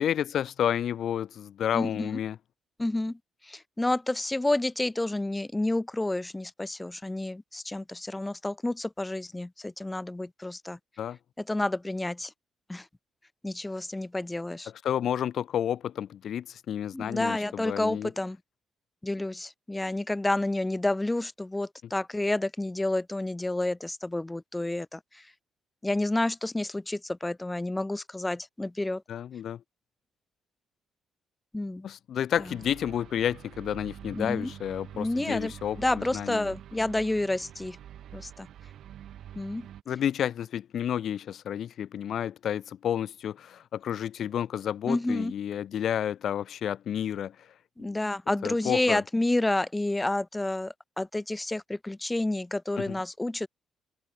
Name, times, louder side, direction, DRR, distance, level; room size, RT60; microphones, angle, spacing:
voice 1, 0.0-2.4 11.0-11.2 14.7-18.1 29.1-29.6 31.8-36.5 39.9-47.5 47.8-48.0 48.4-49.0 52.8-53.0, left 9 dB, 65° left, 1.7 m, -31 dB
voice 2, 1.7-2.1 2.8-3.2 3.5-10.8 11.5-12.3 12.7-12.8 13.4-14.7 16.9-18.4 19.0-25.0 25.8-29.0 31.5-31.9 34.1-34.5 34.9-35.5 35.8-37.8 38.1-38.5 39.4-39.7 44.9-45.3 47.8-53.5, left 2 dB, 10° left, 0.6 m, -29 dB
sound 1, 32.3-39.8, right 10 dB, 70° right, 1.4 m, -46 dB
cardioid pair, 90°, 0 cm